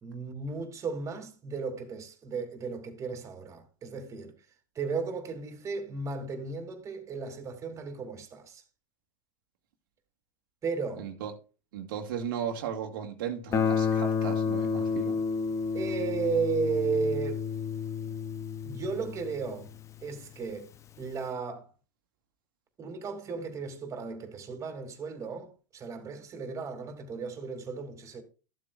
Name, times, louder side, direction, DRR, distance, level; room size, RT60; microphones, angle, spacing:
voice 1, 0.0-4.3 4.7-8.6 10.6-11.1 15.7-17.4 18.6-19.7 20.0-20.7 21.0-21.7 22.8-28.2, right 5 dB, 25° right, 2.7 m, -34 dB
voice 2, 11.0-11.3 11.7-15.2, right 8 dB, 75° right, 2.0 m, -36 dB
Guitar, 13.5-20.2, left 6 dB, 25° left, 0.7 m, -30 dB
14.5 x 7.7 x 2.5 m
supercardioid pair, 120°, 11 cm